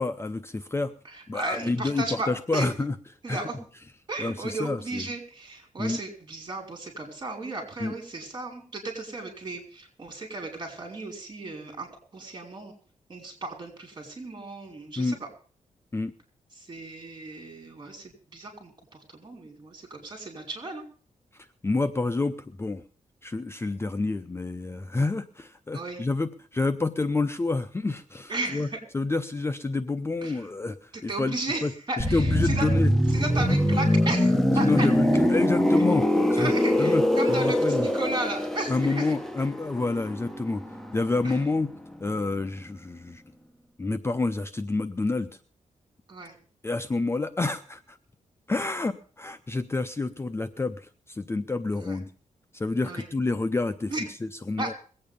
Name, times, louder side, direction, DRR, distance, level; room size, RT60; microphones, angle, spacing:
voice 1, 0.0-0.9 1.3-2.9 3.3-3.4 4.2-5.1 5.8-6.0 7.8-7.9 15.0-15.2 15.9-16.1 21.3-22.8 23.2-32.9 34.6-36.5 36.8-37.0 37.3-37.9 38.7-40.6 40.9-41.7 42.0-43.2 43.8-45.3 46.6-48.0 48.5-52.1 52.5-54.7, left 3 dB, 20° left, 10 dB, 0.6 m, -28 dB
voice 2, 1.1-2.7 3.2-3.6 4.1-11.9 12.1-12.7 13.1-15.3 16.6-20.8 25.7-26.1 28.3-28.8 30.2-30.4 30.9-32.7 33.1-34.9 36.4-39.1 41.2-41.4 46.1-46.4 51.8-52.0 52.8-53.1 53.9-54.1 54.6-54.8, right 2 dB, 35° right, 3 dB, 5.2 m, -35 dB
sound 1, 32.0-41.7 41.9-42.1, left 1 dB, 5° left, 1.2 m, -24 dB
21.5 x 8.8 x 5.2 m, 0.41 s
wide cardioid pair, 130°, 13 cm